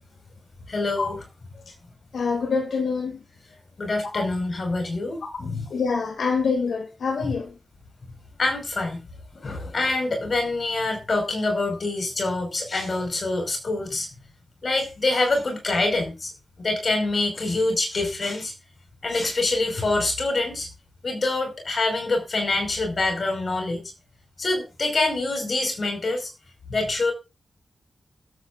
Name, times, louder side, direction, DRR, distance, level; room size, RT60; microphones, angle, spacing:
voice 1, 0.7-1.2 3.8-5.7 7.2-7.3 8.4-9.0 9.3-14.1 14.6-16.3 16.6-18.5 19.0-20.7 21.0-23.9 24.4-26.3 26.7-27.1, left 2 dB, 60° left, 5.3 m, -25 dB
voice 2, 2.1-3.2 5.2-5.3 5.7-7.5, left 5 dB, 85° left, 2.4 m, -25 dB
16.5 x 13.5 x 2.6 m
cardioid pair, 60°, 0 cm